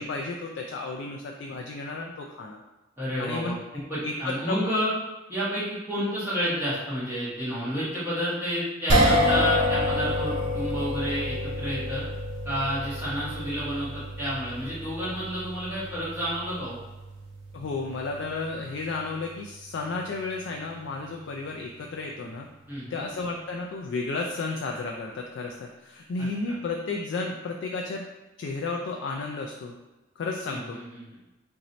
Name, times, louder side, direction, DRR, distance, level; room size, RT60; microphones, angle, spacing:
voice 1, 0.0-2.6 3.2-4.6 17.5-22.5 22.9-28.0 28.4-29.8 30.2-30.8, left 3 dB, 60° left, 1 dB, 0.3 m, -33 dB
voice 2, 3.0-4.9 5.3-12.0 12.4-16.8 22.7-23.0 26.2-26.6 30.5-31.0, equal, 10° right, -11 dB, 1.3 m, -30 dB
sound 1, 8.9-21.2, equal, 70° right, 0.9 m, -29 dB
3.0 x 2.6 x 4.0 m, 1.1 s
head